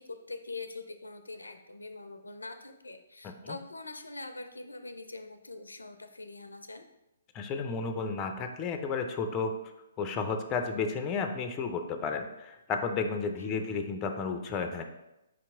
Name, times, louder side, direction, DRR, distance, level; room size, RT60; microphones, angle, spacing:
voice 1, 0.0-6.8 13.4-13.6, left 3 dB, 90° left, 8 dB, 0.4 m, -43 dB
voice 2, 3.2-3.6 7.3-9.5 10.0-14.8, left 5 dB, 25° left, 6 dB, 0.4 m, -32 dB
4.8 x 2.9 x 3.5 m, 0.91 s
figure-of-eight pair, 135°, 0 cm